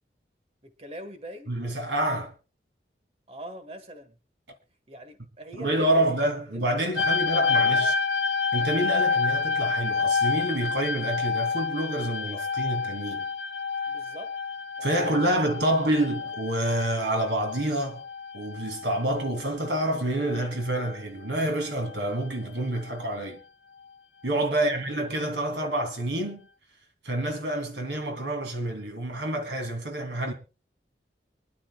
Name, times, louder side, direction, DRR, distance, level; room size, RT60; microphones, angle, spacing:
voice 1, 0.6-1.5 3.3-4.2 4.9-6.1 6.5-7.9 13.9-14.3 14.8-15.3 15.7-15.8 24.5-25.9, right 1 dB, 35° right, 1.6 m, -43 dB
voice 2, 1.5-2.3 5.5-7.9 8.5-13.2 14.8-18.0 18.3-23.4 24.2-26.4 27.0-30.3, right 1 dB, 90° right, 3.2 m, -27 dB
sound 1, 7.0-19.9 20.2-21.0 21.7-22.0, left 5 dB, 75° left, 1.0 m, -29 dB
25.0 x 11.5 x 2.4 m
head